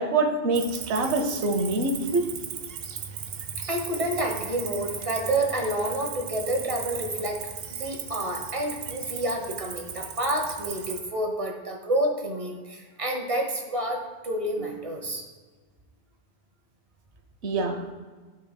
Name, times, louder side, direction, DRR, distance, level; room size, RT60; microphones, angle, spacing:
voice 1, 0.0-2.3 17.4-17.8, right 2 dB, 85° right, 4 dB, 1.1 m, -25 dB
Cricket, 0.5-11.0, right 7 dB, 65° right, 0.8 m, -37 dB
voice 2, 3.7-15.2, right 1 dB, 35° right, 1 dB, 1.0 m, -29 dB
13.0 x 4.4 x 2.2 m, 1.4 s
omnidirectional pair, 1.1 m